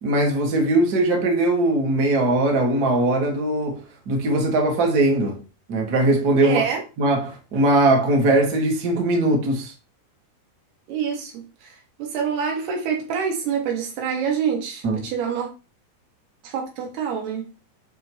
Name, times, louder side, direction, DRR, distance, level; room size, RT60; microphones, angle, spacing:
voice 1, 0.0-5.4 5.7-6.6 7.0-9.7 14.8-15.0, right 2 dB, 35° right, 1.7 m, -20 dB
voice 2, 6.4-6.8 10.9-11.3 12.0-15.5 16.4-17.4, right 7 dB, 90° right, 3.9 m, -26 dB
11.0 x 4.7 x 3.1 m
omnidirectional pair, 4.5 m